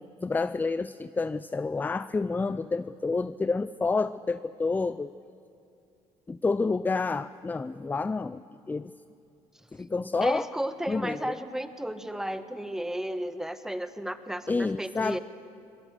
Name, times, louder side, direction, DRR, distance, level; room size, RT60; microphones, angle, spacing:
voice 1, 0.0-5.1 6.3-8.4 8.7-8.9 9.7-10.5 10.9-11.3 14.5-15.2, left 4 dB, 15° left, 15 dB, 0.4 m, -29 dB
voice 2, 10.2-15.2, right 1 dB, 5° right, 10 dB, 1.2 m, -33 dB
23.0 x 19.0 x 6.7 m, 2.6 s
supercardioid pair, 95°, 13 cm